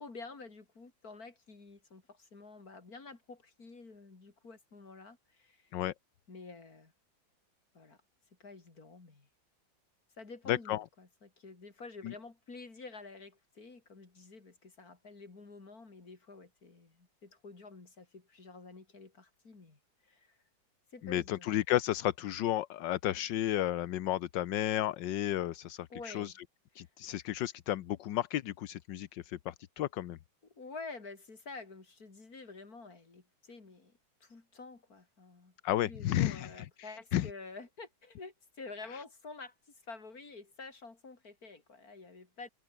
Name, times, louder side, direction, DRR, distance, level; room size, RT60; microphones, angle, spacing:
voice 1, 0.0-5.7 6.3-6.9 7.7-8.0 8.4-9.3 10.2-20.4 20.9-21.5 25.9-26.4 26.8-26.9 30.4-35.5 35.8-39.5 39.8-42.5, left 3 dB, 50° left, 4.1 m, -49 dB
voice 2, 10.5-10.8 12.0-12.1 21.0-26.3 26.8-30.2 35.6-36.5 36.8-37.3, left 13 dB, 75° left, 1.5 m, -32 dB
omnidirectional pair, 2.1 m